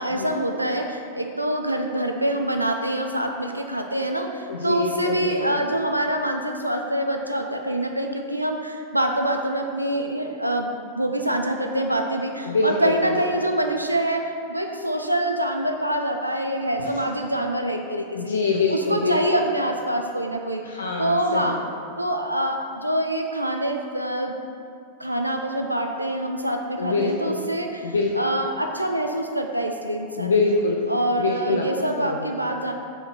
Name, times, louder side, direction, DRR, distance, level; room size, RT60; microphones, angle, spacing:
voice 1, 0.0-18.3 18.7-20.6 21.0-21.6 22.0-24.4 25.0-30.3 30.9-32.7, right 1 dB, 85° right, 3 dB, 0.4 m, -25 dB
voice 2, 4.5-5.6 12.4-13.2 16.8-17.0 18.1-19.2 20.6-21.6 26.8-27.4 27.8-28.1 30.2-30.8 31.2-32.3, left 3 dB, 70° left, 0 dB, 0.5 m, -25 dB
4.8 x 4.4 x 5.5 m, 2.4 s
figure-of-eight pair, 90°, 0 cm